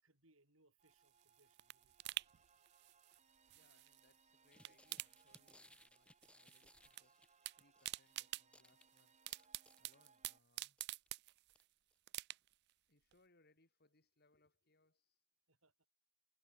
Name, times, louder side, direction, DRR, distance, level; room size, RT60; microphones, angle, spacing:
voice 1, 0.0-2.3 15.5-15.9, right 2 dB, 75° right, 6.8 m, -75 dB
sound 1, 0.8-10.4, right 5 dB, 35° right, 5.1 m, -73 dB
sound 2, 0.9-4.2 4.5-6.0 6.2-7.0 7.3-11.6 12.1-12.7 13.1-13.2, right 16 dB, 55° right, 0.3 m, -49 dB
voice 2, 3.5-7.2 7.6-9.2 9.8-10.8 12.9-15.2, left 2 dB, 50° left, 6.4 m, -75 dB
sound 3, 4.5-8.1 8.4-10.3 10.8-11.1 11.5-11.6 11.9-12.0, left 1 dB, 5° left, 3.9 m, -67 dB
head